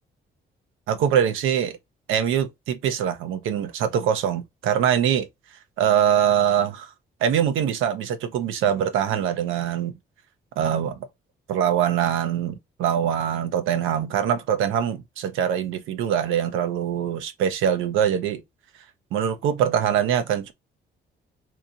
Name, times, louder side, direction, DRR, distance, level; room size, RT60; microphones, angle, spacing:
voice 1, 0.9-1.8 2.1-5.3 5.8-6.9 7.2-9.9 10.6-11.1 11.5-18.4 19.1-20.5, right 9 dB, 90° right, 0.6 m, -23 dB
2.9 x 2.7 x 3.7 m
cardioid pair, 90°, 20 cm